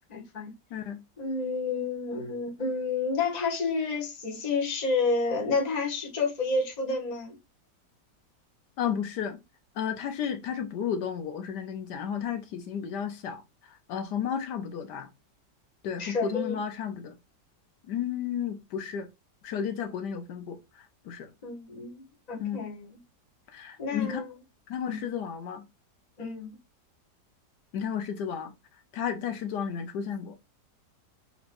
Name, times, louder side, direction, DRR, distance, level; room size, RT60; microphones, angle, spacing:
voice 1, 0.1-0.5 1.2-7.4 16.0-16.6 21.4-22.0 22.3-22.9 23.8-24.3 24.9-25.0 26.2-26.5, left 3 dB, 25° left, 1.1 m, -30 dB
voice 2, 0.7-1.0 8.8-9.4 9.8-15.1 15.8-17.1 17.9-19.1 19.4-21.3 22.4-22.6 23.5-24.2 24.7-25.6 27.7-28.5 28.9-30.3, left 8 dB, 75° left, 1.3 m, -33 dB
6.6 x 3.0 x 2.5 m
omnidirectional pair, 1.9 m